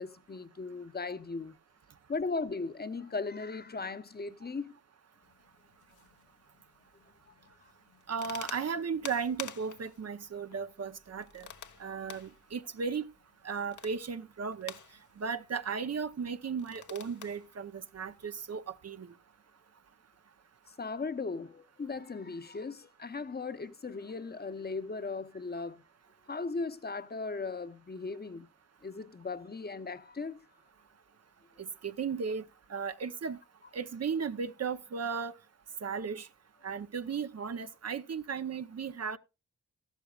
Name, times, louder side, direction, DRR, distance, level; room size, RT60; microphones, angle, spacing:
voice 1, 0.0-1.6 2.1-4.7 7.3-7.7 20.7-25.8 26.3-28.5 28.8-30.4, left 4 dB, 30° left, 0.9 m, -38 dB
sound 1, 5.2-18.8, left 8 dB, 75° left, 1.1 m, -51 dB
voice 2, 8.1-11.5 11.8-13.0 13.4-14.7 15.2-19.1 31.6-32.4 32.7-33.4 33.7-35.3 35.8-36.3 36.6-39.2, right 6 dB, 55° right, 0.9 m, -35 dB
14.0 x 12.5 x 2.4 m
cardioid pair, 70°, 30 cm